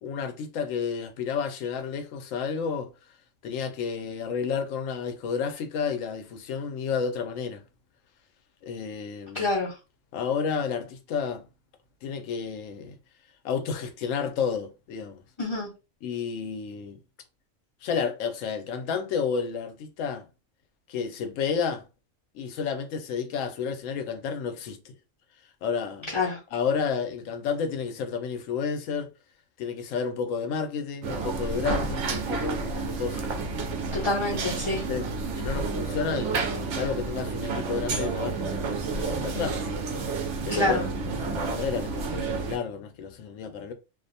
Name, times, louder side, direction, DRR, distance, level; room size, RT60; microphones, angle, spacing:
voice 1, 0.0-2.9 3.4-7.6 8.6-9.5 10.1-11.5 12.0-13.0 13.4-15.2 16.0-17.0 17.8-20.3 20.9-21.8 22.3-24.9 25.6-26.1 26.5-29.1 29.6-33.2 34.7-35.1 35.4-39.6 40.4-43.7, left 6 dB, 85° left, 1.0 m, -31 dB
voice 2, 9.3-9.7 15.4-15.7 26.1-26.4 33.9-34.8 40.5-40.8, left 2 dB, 35° left, 0.5 m, -26 dB
sound 1, 31.0-42.6, right 4 dB, 70° right, 0.9 m, -30 dB
2.6 x 2.1 x 2.6 m
omnidirectional pair, 1.3 m